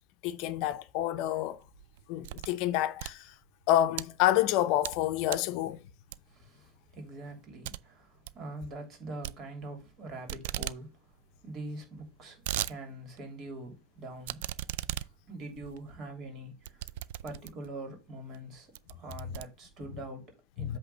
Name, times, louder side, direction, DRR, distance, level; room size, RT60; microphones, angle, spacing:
voice 1, 0.2-1.6 2.1-3.2 3.7-5.8 20.6-20.8, left 13 dB, 60° left, 0.6 m, -28 dB
sound 1, 1.6-2.6 2.9-4.1 4.6-5.0 5.3-5.6 6.1-6.5 6.9-7.0 7.3-7.4 7.6-7.8 8.1-8.4 9.2-10.0 10.3-10.8 11.1-11.2 11.4-11.5 12.0-12.8 13.2-13.3 14.2-17.8 18.3-18.4 18.8-20.0, right 14 dB, 75° right, 0.4 m, -38 dB
voice 2, 6.3-11.1 11.4-14.5 15.2-16.9 17.2-20.8, right 2 dB, 35° right, 3.0 m, -44 dB
8.0 x 3.5 x 5.5 m
supercardioid pair, 150°, 0 cm